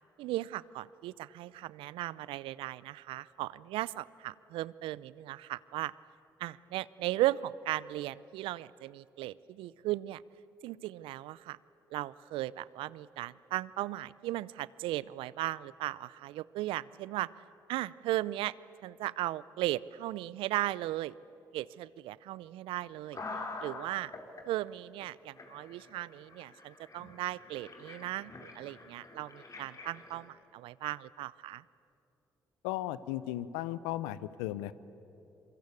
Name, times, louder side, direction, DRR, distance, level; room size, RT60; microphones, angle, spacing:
voice 1, 0.2-5.9 6.4-10.2 10.6-11.6 11.9-17.3 17.7-18.5 18.8-21.1 21.5-23.2 23.6-24.1 24.5-31.6, right 16 dB, 75° right, 21 dB, 0.5 m, -36 dB
sound 1, 23.1-24.4 25.0-25.1 25.4-30.3, left 3 dB, 40° left, 3.7 m, -46 dB
voice 2, 32.6-34.7, left 14 dB, 85° left, 17 dB, 0.7 m, -36 dB
26.5 x 23.0 x 8.4 m, 2.8 s
hypercardioid pair, 50°, 9 cm